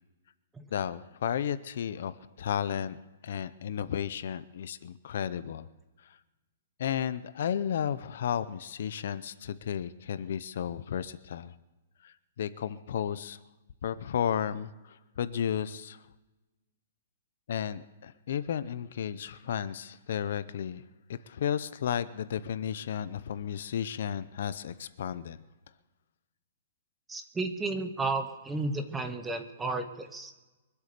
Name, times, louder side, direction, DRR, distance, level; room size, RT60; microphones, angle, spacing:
voice 1, 0.7-3.0 3.2-5.7 6.1-6.2 6.8-11.5 12.0-13.4 13.8-16.0 17.5-20.8 21.3-25.4, left 9 dB, 50° left, 15 dB, 0.6 m, -33 dB
voice 2, 27.1-30.3, right 3 dB, 5° right, 7 dB, 0.8 m, -33 dB
23.5 x 8.2 x 6.7 m, 1.1 s
hypercardioid pair, 175°, 0 cm